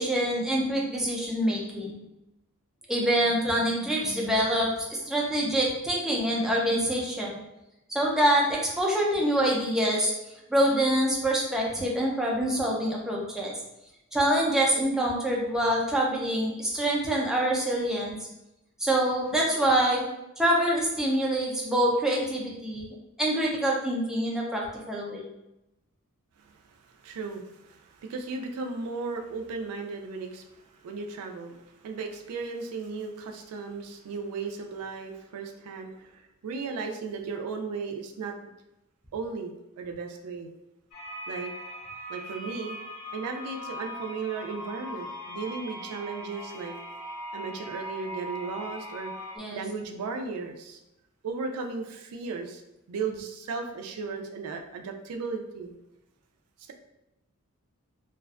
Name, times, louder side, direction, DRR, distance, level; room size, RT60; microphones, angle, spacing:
voice 1, 0.0-2.0 2.9-7.4 7.9-10.1 10.5-13.5 14.1-18.2 18.8-20.0 20.4-22.9 23.2-25.3 49.4-49.6, right 1 dB, ahead, -3 dB, 0.4 m, -25 dB
voice 2, 26.4-38.5 39.1-40.5 41.3-41.5 42.1-42.8 43.1-46.8 47.3-49.1 49.5-50.8 51.2-52.6 52.9-55.7, right 4 dB, 85° right, 4 dB, 0.3 m, -36 dB
sound 1, 40.9-49.4, equal, 75° left, 0.7 m, -40 dB
2.4 x 2.1 x 2.3 m, 0.93 s
head